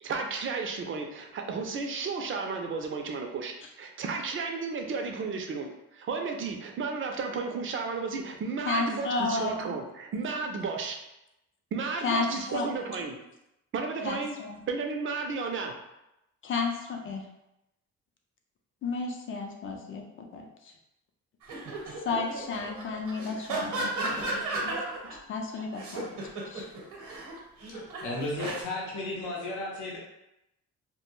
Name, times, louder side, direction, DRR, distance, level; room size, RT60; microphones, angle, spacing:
voice 1, 0.0-11.0 11.7-13.2 13.7-14.4 14.7-15.7, right 4 dB, 45° right, 3 dB, 0.4 m, -33 dB
voice 2, 8.7-9.6 12.0-12.7 14.0-14.6 16.4-17.2 18.8-20.5 22.0-24.8 25.3-26.1 26.5-26.6, left 4 dB, 45° left, 3 dB, 0.5 m, -32 dB
sound 1, 21.4-25.1 25.5-28.6, right 2 dB, 80° right, 0.8 m, -34 dB
voice 3, 27.7-30.0, left 2 dB, 80° left, -3 dB, 0.7 m, -34 dB
2.1 x 2.1 x 3.0 m, 0.89 s
cardioid pair, 90°, 30 cm